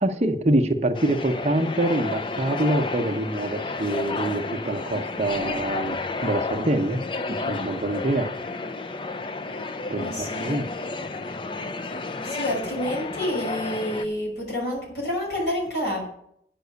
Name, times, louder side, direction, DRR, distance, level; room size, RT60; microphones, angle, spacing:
voice 1, 0.0-8.3 9.9-10.7, right 1 dB, 40° right, 6 dB, 0.8 m, -25 dB
sound 1, 0.9-14.1, left 3 dB, 30° left, 0.4 m, -31 dB
voice 2, 10.0-10.6 12.2-16.1, left 1 dB, 70° left, -2 dB, 5.5 m, -28 dB
9.4 x 6.1 x 8.0 m, 0.71 s
head